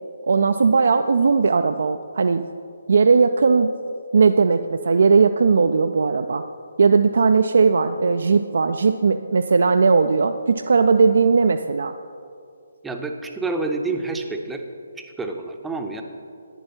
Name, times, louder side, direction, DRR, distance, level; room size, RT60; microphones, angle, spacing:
voice 1, 0.3-2.5 2.9-3.7 4.1-6.4 6.8-11.9, right 4 dB, 60° right, 8 dB, 0.3 m, -18 dB
voice 2, 12.8-14.6 15.0-16.0, right 3 dB, 5° right, 3 dB, 0.6 m, -28 dB
10.5 x 9.4 x 4.3 m, 2.4 s
figure-of-eight pair, 140°, 0 cm